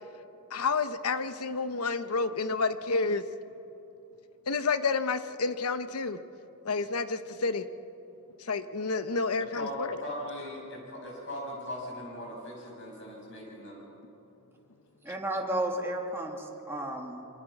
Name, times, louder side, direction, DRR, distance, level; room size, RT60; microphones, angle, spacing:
voice 1, 0.5-3.2 4.5-6.2 6.6-7.7 8.4-10.0, left 4 dB, 85° left, 11 dB, 1.0 m, -29 dB
voice 2, 10.0-13.8, left 1 dB, 60° left, -1 dB, 7.5 m, -39 dB
voice 3, 15.0-17.3, right 1 dB, 10° right, 0 dB, 2.4 m, -33 dB
26.0 x 24.5 x 6.0 m, 2.9 s
head